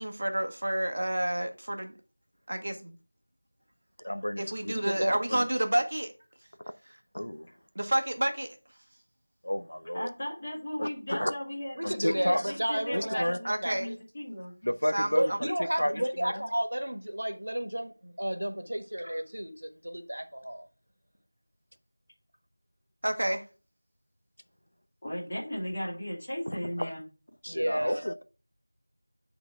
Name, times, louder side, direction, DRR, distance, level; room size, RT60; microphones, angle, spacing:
voice 1, 0.0-1.9 2.5-3.0 4.4-6.1 7.7-8.6 13.4-13.9 14.9-15.4 23.0-23.4, right 1 dB, 45° right, 1.0 m, -29 dB
voice 2, 4.0-4.7 5.3-5.4 7.1-7.5 9.4-10.1 10.8-11.3 11.8-12.5 12.9-13.4 14.6-15.5 15.8-16.5 26.5-26.9 27.4-28.2, equal, 70° left, 0.7 m, -31 dB
voice 3, 4.9-5.2 11.8-13.2 13.6-13.9 15.2-20.7 27.5-28.0, equal, 65° right, 1.3 m, -32 dB
voice 4, 9.9-14.6 25.0-27.0, equal, 25° left, 2.6 m, -36 dB
9.5 x 3.9 x 3.4 m
figure-of-eight pair, 175°, 0 cm